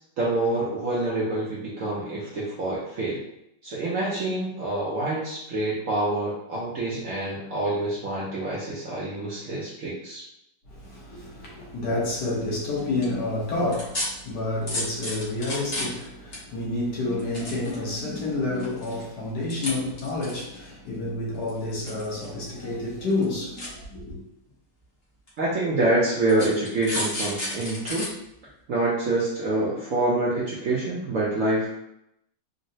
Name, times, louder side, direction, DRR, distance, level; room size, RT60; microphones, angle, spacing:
voice 1, 0.2-3.2 3.6-10.2 25.4-28.1 28.7-31.7, right 2 dB, 65° right, 0.8 m, -26 dB
voice 2, 10.6-24.2, left 2 dB, 70° left, 1.4 m, -29 dB
sound 1, 12.8-13.0 13.7-14.1 14.7-16.1 16.3-16.4 17.1-18.1 18.6-19.0 19.5-19.7 20.0-20.7 21.5-22.3 22.6-22.7 23.1-23.2 23.6-23.7 24.5-24.6 25.3-25.4 26.3-28.1 28.5-28.6, left 1 dB, 40° left, 1.1 m, -31 dB
3.8 x 2.1 x 2.6 m
omnidirectional pair, 1.9 m